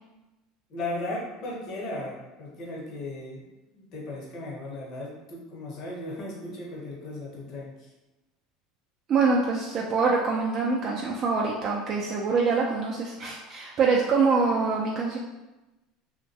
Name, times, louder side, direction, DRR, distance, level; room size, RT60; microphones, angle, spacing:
voice 1, 0.7-3.4 3.7-7.9, left 2 dB, 55° left, -3 dB, 0.8 m, -36 dB
voice 2, 9.1-15.2, right 4 dB, 45° right, -3 dB, 0.3 m, -25 dB
2.2 x 2.1 x 2.7 m, 1.0 s
supercardioid pair, 115°, 0 cm